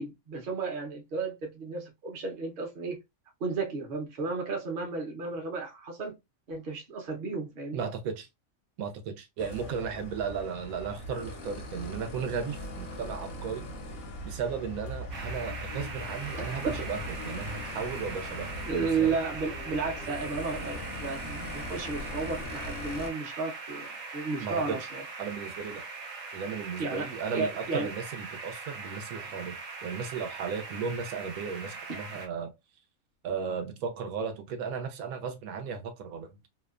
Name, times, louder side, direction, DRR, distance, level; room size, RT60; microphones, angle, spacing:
voice 1, 0.0-3.0 3.4-6.2 6.5-7.9 16.7-16.8 18.7-25.0 26.8-27.1 27.3-27.9 31.9-32.0, right 4 dB, 50° right, 0.8 m, -33 dB
voice 2, 7.7-8.3 8.8-13.7 14.2-19.1 24.4-24.9 25.2-25.8 26.3-32.5 33.2-36.4, right 6 dB, 90° right, 1.0 m, -35 dB
sound 1, 9.4-23.1, left 1 dB, 60° left, 0.6 m, -40 dB
Wind instrument woodwind instrument, 13.9-19.7, left 8 dB, 80° left, 1.0 m, -53 dB
sound 2, 15.1-32.3, right 4 dB, 70° right, 0.4 m, -41 dB
2.8 x 2.1 x 2.3 m
omnidirectional pair, 1.5 m